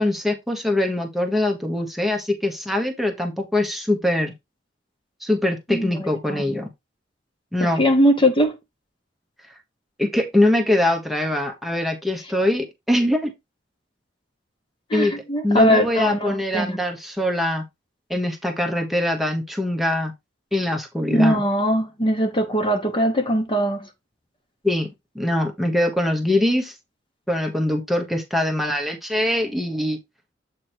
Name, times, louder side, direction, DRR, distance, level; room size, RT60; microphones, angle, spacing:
voice 1, 0.0-4.3 5.2-6.7 7.5-7.8 10.0-13.3 14.9-17.6 18.1-20.1 20.5-21.4 24.6-24.9 25.1-26.7 27.3-30.0, left 1 dB, ahead, 1.0 m, -23 dB
voice 2, 5.7-6.4 7.6-8.6 14.9-16.8 21.1-23.9, equal, 25° left, 1.0 m, -21 dB
7.9 x 3.0 x 4.4 m
head